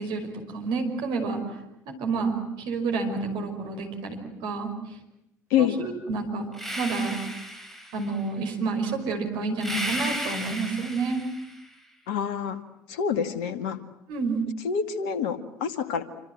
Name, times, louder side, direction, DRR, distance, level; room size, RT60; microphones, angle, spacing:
voice 1, 0.0-1.4 1.9-4.7 5.6-6.5 6.8-7.2 7.9-11.2 14.1-14.4, right 4 dB, 55° right, 3 dB, 5.4 m, -29 dB
sound 1, 6.5-8.2 9.6-11.7, equal, 5° left, 5.1 m, -34 dB
voice 2, 12.1-12.6 12.9-13.8 14.6-16.0, left 7 dB, 60° left, 12 dB, 2.1 m, -27 dB
27.0 x 26.0 x 7.9 m, 0.85 s
figure-of-eight pair, 60°, 9 cm